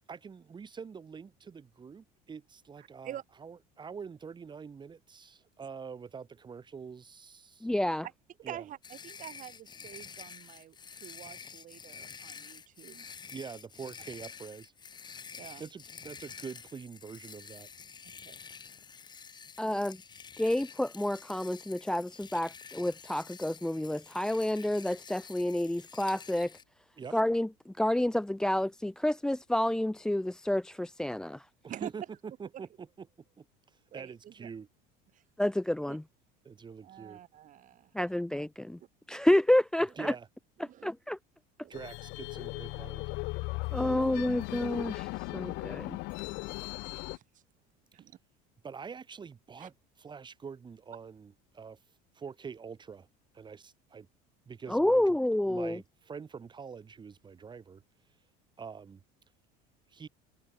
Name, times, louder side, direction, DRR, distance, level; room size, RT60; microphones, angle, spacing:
voice 1, 0.1-7.7 8.4-8.6 13.3-14.7 15.6-17.7 27.0-27.2 31.6-32.0 32.4-33.1 33.4-34.7 36.4-37.2 39.9-40.3 41.7-43.1 48.6-53.1 53.3-54.1 54.5-55.2 55.5-58.2 58.6-59.0 59.9-60.1, right 6 dB, 25° right, 4.1 m, -45 dB
voice 2, 2.8-3.2 8.4-13.1 15.4-15.6 18.2-18.4 19.6-19.8 31.7-31.9 32.5-32.6 33.9-34.5 35.1-35.2 35.9-36.0 36.8-38.2 40.6-40.9 41.6-41.7 46.8-47.4 47.9-48.2 49.6-49.7, right 11 dB, 40° right, 3.4 m, -47 dB
voice 3, 7.6-8.1 19.6-20.0 20.4-26.5 27.1-31.4 35.4-36.0 37.9-38.8 39.1-40.1 40.8-41.2 43.7-46.0 54.7-55.8, left 1 dB, 5° left, 0.5 m, -29 dB
sound 1, 8.8-26.6, left 6 dB, 20° left, 1.4 m, -49 dB
sound 2, 41.7-47.2, left 25 dB, 65° left, 1.7 m, -37 dB
open air
cardioid pair, 135°, 20 cm